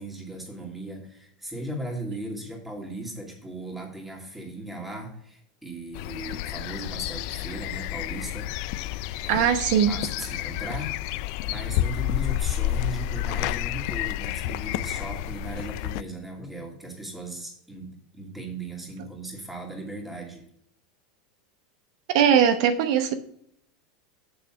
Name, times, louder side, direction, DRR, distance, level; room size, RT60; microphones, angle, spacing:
voice 1, 0.0-9.5 9.9-20.4, right 1 dB, 5° right, 0 dB, 2.4 m, -37 dB
sound 1, 5.9-16.0, left 14 dB, 55° left, 0.4 m, -30 dB
voice 2, 9.3-9.9 22.1-23.1, right 8 dB, 65° right, 8 dB, 0.9 m, -20 dB
6.9 x 6.0 x 6.1 m, 0.71 s
supercardioid pair, 135°, 4 cm